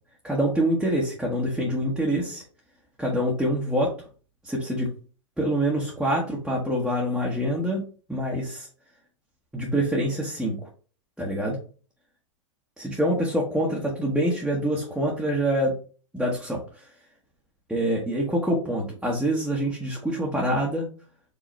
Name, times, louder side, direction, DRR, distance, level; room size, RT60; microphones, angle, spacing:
voice 1, 0.2-2.4 3.0-3.9 4.4-4.9 5.4-8.7 9.5-10.6 11.2-11.6 13.0-15.7 16.1-16.6 17.7-20.9, right 1 dB, ahead, -4 dB, 1.1 m, -25 dB
5.0 x 3.0 x 3.1 m, 0.38 s
hypercardioid pair, 135°, 16 cm